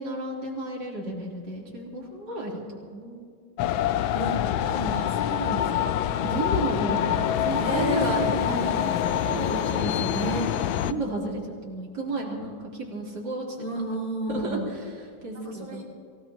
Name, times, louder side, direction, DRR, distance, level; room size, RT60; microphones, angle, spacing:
voice 1, 0.0-3.3 6.1-10.3 10.8-13.6 13.9-14.0 14.3-15.8, right 2 dB, 55° right, -4 dB, 4.1 m, -33 dB
sound 1, 3.6-10.9, left 10 dB, 80° left, 1.4 m, -26 dB
voice 2, 4.1-6.0 7.6-8.6 10.1-10.5 13.6-14.6 15.3-15.8, right 1 dB, 25° right, -3 dB, 4.3 m, -32 dB
25.5 x 17.5 x 3.0 m, 2.3 s
omnidirectional pair, 2.2 m